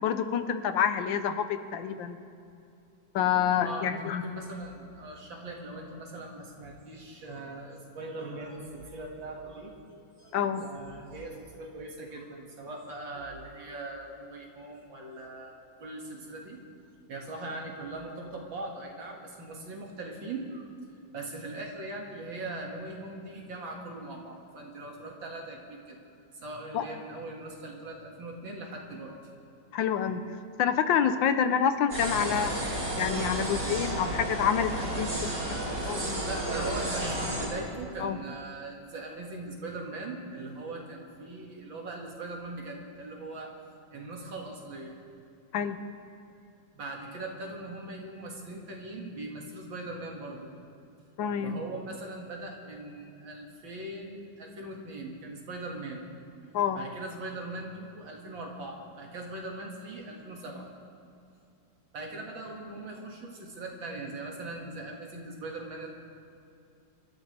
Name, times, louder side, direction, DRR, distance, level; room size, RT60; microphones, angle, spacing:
voice 1, 0.0-2.2 3.1-4.2 10.3-10.6 26.7-26.8 29.7-30.2 30.6-32.5 33.0-36.2 38.0-38.2 45.5-45.8 51.2-51.6 56.5-56.8, left 8 dB, 80° left, 10 dB, 1.5 m, -28 dB
voice 2, 3.6-16.6 17.1-20.7 21.1-26.0 26.4-29.1 36.2-43.5 43.9-45.0 46.7-50.5 51.4-56.0 56.7-60.7 61.9-65.9, right 2 dB, 85° right, 0 dB, 2.8 m, -40 dB
sound 1, 31.9-37.5, right 1 dB, 70° right, 5.1 m, -32 dB
26.5 x 13.0 x 3.4 m, 2.7 s
omnidirectional pair, 2.1 m